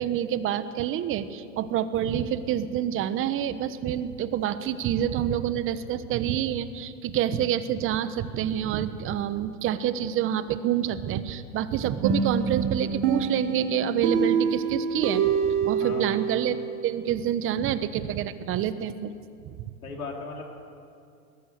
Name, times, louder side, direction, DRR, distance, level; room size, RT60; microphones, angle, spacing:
voice 1, 0.0-15.3 15.6-19.1 19.5-19.6, right 10 dB, 30° right, 13 dB, 1.1 m, -27 dB
sound 1, 12.0-16.7, right 6 dB, 55° right, 3.7 m, -26 dB
voice 2, 15.8-16.2 19.8-20.5, left 3 dB, 90° left, 1 dB, 4.6 m, -36 dB
21.0 x 20.5 x 6.7 m, 2.4 s
hypercardioid pair, 120°, 42 cm